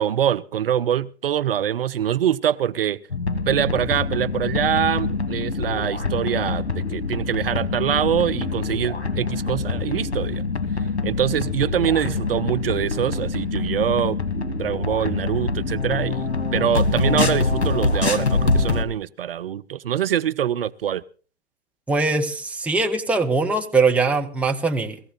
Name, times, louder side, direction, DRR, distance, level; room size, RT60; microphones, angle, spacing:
voice 1, 0.0-3.0 3.5-10.4 11.0-16.2 16.5-21.0, right 10 dB, 60° right, 0.7 m, -24 dB
sound 1, 3.1-18.8, left 4 dB, 70° left, 2.2 m, -25 dB
voice 2, 21.9-25.0, right 3 dB, 5° right, 1.6 m, -21 dB
19.0 x 15.0 x 4.2 m
figure-of-eight pair, 105°, 33 cm